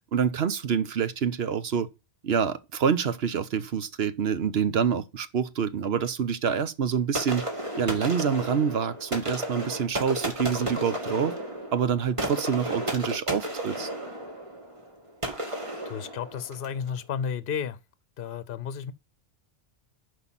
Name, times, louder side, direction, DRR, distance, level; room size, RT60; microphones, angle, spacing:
voice 1, 0.1-1.9 2.2-7.4 7.8-11.3 11.7-13.9, right 7 dB, 75° right, 1.1 m, -26 dB
sound 1, 7.1-16.8, right 1 dB, 30° right, 2.0 m, -33 dB
voice 2, 15.9-17.8 18.2-18.9, left 7 dB, 65° left, 0.8 m, -32 dB
8.0 x 5.2 x 7.5 m
omnidirectional pair, 1.0 m